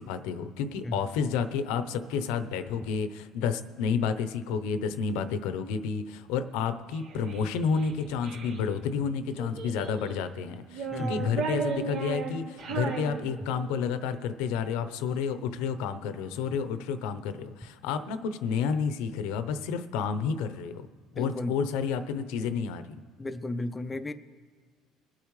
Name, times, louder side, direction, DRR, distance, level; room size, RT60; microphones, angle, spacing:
voice 1, 0.0-20.9 21.1-22.9, left 6 dB, 85° left, 11 dB, 0.8 m, -30 dB
Child speech kid speaking, 6.9-8.6 9.4-10.2 10.7-13.8, right 5 dB, 80° right, 2.6 m, -35 dB
voice 2, 10.9-11.3 21.2-21.5 23.2-24.1, left 2 dB, 15° left, 9 dB, 0.5 m, -33 dB
23.0 x 8.6 x 3.2 m, 1.5 s
cardioid pair, 125°, 0 cm